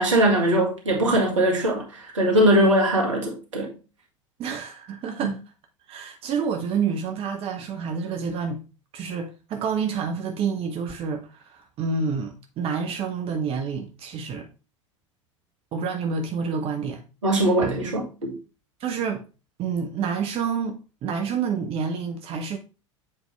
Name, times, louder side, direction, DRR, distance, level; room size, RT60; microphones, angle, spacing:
voice 1, 0.0-3.7 5.2-5.3 17.2-18.3, right 1 dB, 75° right, 1.9 m, -21 dB
voice 2, 4.4-5.4 5.9-8.6 8.9-14.5 15.7-17.0 18.8-19.2 19.6-22.6, right 6 dB, 35° right, 0.9 m, -28 dB
7.6 x 4.6 x 3.2 m
figure-of-eight pair, 80°, 16 cm